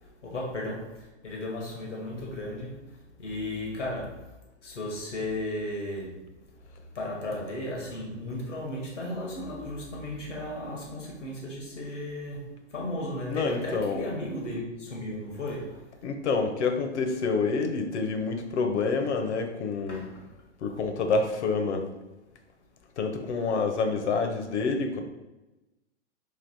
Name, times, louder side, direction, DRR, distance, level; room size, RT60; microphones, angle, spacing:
voice 1, 0.0-6.3 6.9-15.9 19.9-20.3, left 1 dB, 90° left, -2 dB, 1.2 m, -35 dB
voice 2, 13.3-14.1 16.0-20.1 20.6-21.9 23.0-25.0, left 4 dB, 70° left, 5 dB, 0.8 m, -27 dB
3.2 x 2.8 x 4.0 m, 1.0 s
hypercardioid pair, 115°, 35 cm